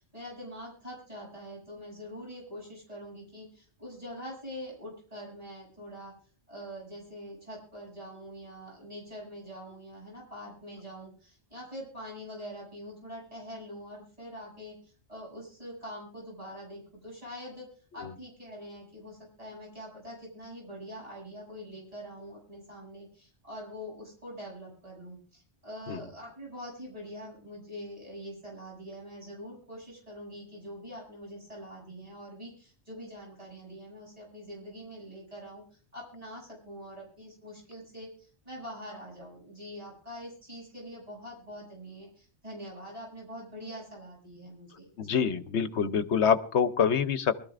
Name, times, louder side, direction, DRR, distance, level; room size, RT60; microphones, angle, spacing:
voice 1, 0.0-6.1 6.5-17.7 17.9-35.6 35.9-45.2, equal, 30° right, -4 dB, 7.4 m, -44 dB
voice 2, 45.0-47.3, left 7 dB, 75° left, 12 dB, 1.1 m, -26 dB
24.0 x 13.5 x 2.5 m, 0.41 s
omnidirectional pair, 1.2 m